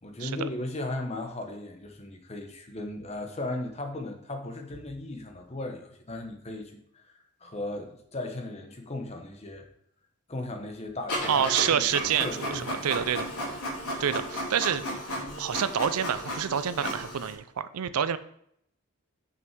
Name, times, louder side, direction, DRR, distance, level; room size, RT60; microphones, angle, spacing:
voice 1, 0.0-9.7 10.3-11.4 11.7-12.9, left 2 dB, 30° left, 4 dB, 0.9 m, -37 dB
Printer, 11.1-17.3, equal, 85° left, 2.8 m, -34 dB
voice 2, 11.3-13.3 14.0-14.9 15.4-18.2, right 8 dB, 85° right, 14 dB, 0.5 m, -27 dB
6.2 x 5.7 x 4.6 m, 0.71 s
head